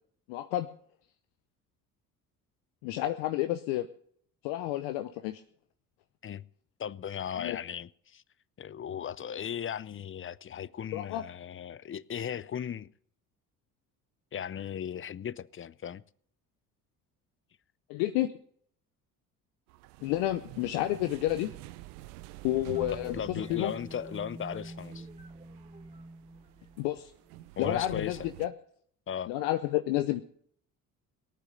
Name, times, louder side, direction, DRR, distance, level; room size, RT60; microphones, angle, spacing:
voice 1, 0.3-0.7 2.8-3.9 4.4-5.4 7.4-7.6 10.9-11.2 17.9-18.3 20.0-21.5 22.4-23.7 26.8-27.1 27.6-28.5 29.3-30.2, left 15 dB, 70° left, 0.8 m, -30 dB
voice 2, 6.8-8.2 8.6-12.9 14.3-16.0 23.0-25.1 27.6-28.3 29.1-29.3, left 8 dB, 30° left, 0.5 m, -37 dB
sound 1, 19.7-28.5, right 18 dB, 80° right, 0.6 m, -48 dB
sound 2, 22.7-27.4, right 2 dB, 15° right, 1.6 m, -46 dB
18.5 x 9.2 x 6.6 m
hypercardioid pair, 55°, 45 cm